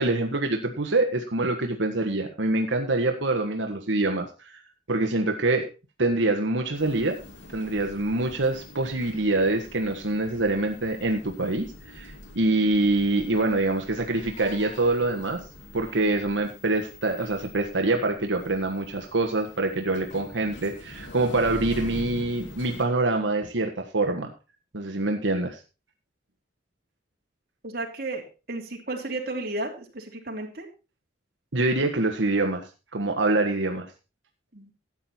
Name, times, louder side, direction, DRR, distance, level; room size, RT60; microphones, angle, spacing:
voice 1, 0.0-4.6 4.9-5.7 6.0-7.2 7.5-15.4 15.7-24.3 24.7-25.6 31.5-33.9, right 2 dB, 90° right, 3 dB, 1.5 m, -25 dB
sound 1, 6.7-22.9, left 2 dB, 90° left, 2.5 m, -44 dB
voice 2, 27.6-30.7 34.5-34.7, right 2 dB, 55° right, 1 dB, 3.3 m, -33 dB
13.5 x 9.0 x 4.4 m, 0.31 s
head